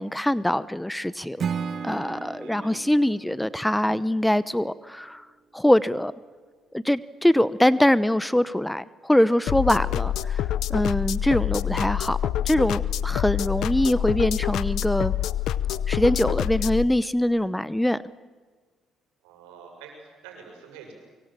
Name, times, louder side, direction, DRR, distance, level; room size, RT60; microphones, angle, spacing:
voice 1, 0.0-1.4 1.8-5.3 5.5-6.1 6.7-12.2 12.4-15.2 15.9-18.0, left 1 dB, 5° left, 17 dB, 0.9 m, -23 dB
Acoustic guitar / Strum, 1.4-4.6, right 6 dB, 55° right, 1.5 m, -35 dB
voice 2, 2.4-3.1 19.2-20.9, right 6 dB, 90° right, 3 dB, 6.8 m, -47 dB
sound 1, 9.5-16.8, left 11 dB, 70° left, 0.7 m, -26 dB
24.5 x 24.0 x 7.6 m, 1.5 s
supercardioid pair, 60°, 0 cm